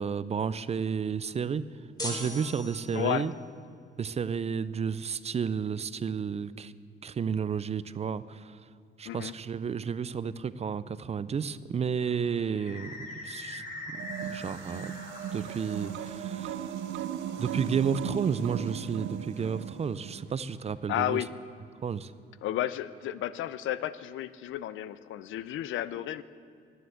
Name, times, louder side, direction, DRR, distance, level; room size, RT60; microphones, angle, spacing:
voice 1, 0.0-1.6 2.0-3.3 4.0-6.7 7.0-8.5 9.0-12.9 13.2-13.6 14.3-14.9 15.3-16.7 17.4-21.2 21.8-22.1, right 6 dB, 30° right, 16 dB, 0.4 m, -32 dB
sound 1, 2.0-3.3, left 1 dB, 20° left, 1.9 m, -38 dB
voice 2, 2.9-3.3 9.1-9.3 20.9-21.3 22.4-26.2, left 12 dB, 80° left, 16 dB, 0.5 m, -32 dB
sound 2, 12.0-21.3, left 2 dB, 40° left, 2.1 m, -45 dB
sound 3, 13.9-20.3, right 10 dB, 90° right, 0.6 m, -37 dB
10.0 x 9.6 x 7.9 m, 2.4 s
cardioid pair, 90°, 20 cm